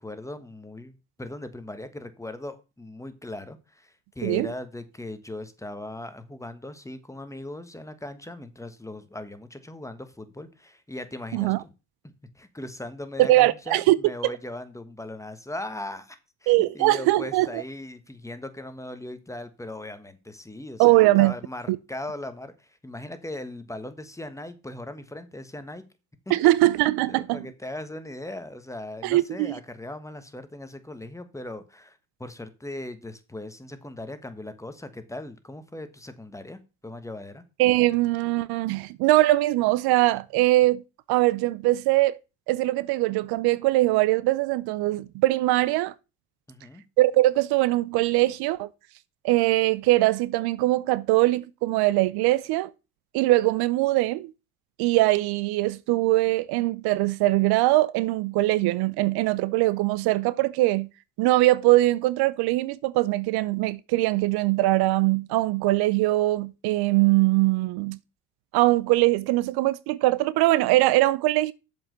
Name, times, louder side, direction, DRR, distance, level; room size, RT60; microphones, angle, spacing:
voice 1, 0.0-11.7 12.0-25.8 26.2-26.3 27.1-37.4 46.5-46.8, left 1 dB, 5° left, 1.3 m, -39 dB
voice 2, 13.2-14.0 14.2-14.3 16.5-17.6 20.8-21.3 21.7-21.8 26.3-27.5 29.0-29.5 37.6-40.8 41.1-42.2 42.5-45.9 47.0-48.7 49.2-52.7 53.1-54.3 54.8-60.9 61.2-68.0 68.5-71.5, right 18 dB, 70° right, 0.6 m, -22 dB
7.2 x 5.3 x 6.6 m
supercardioid pair, 85°, 40 cm